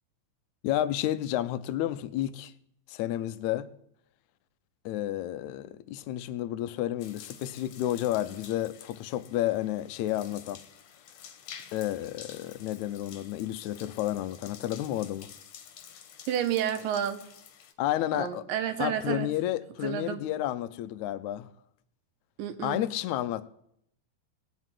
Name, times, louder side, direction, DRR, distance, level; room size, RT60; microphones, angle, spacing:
voice 1, 0.6-2.5 2.9-3.7 4.9-10.6 11.7-15.3 17.8-18.5 18.8-21.5 22.6-23.5, left 13 dB, 75° left, 1.7 m, -31 dB
sound 1, 7.0-17.7, left 8 dB, 60° left, 1.9 m, -50 dB
voice 2, 16.3-17.2 18.2-19.3 19.8-20.2 22.4-22.8, right 10 dB, 80° right, 2.5 m, -30 dB
17.5 x 6.3 x 9.1 m
omnidirectional pair, 4.0 m